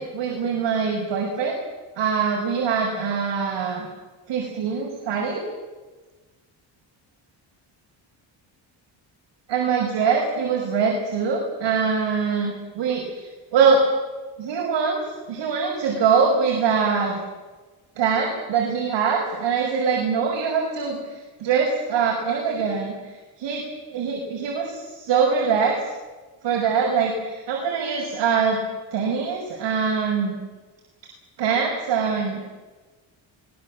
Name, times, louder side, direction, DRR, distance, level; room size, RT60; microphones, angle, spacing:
voice 1, 0.0-1.6 2.0-3.9 4.3-5.4 9.5-13.8 14.4-15.0 15.3-17.2 18.0-23.6 23.9-25.9 26.4-28.6 28.9-30.4 31.4-32.5, right 6 dB, 70° right, -2 dB, 6.1 m, -23 dB
24.5 x 20.0 x 7.6 m, 1.3 s
cardioid pair, 155°, 45 cm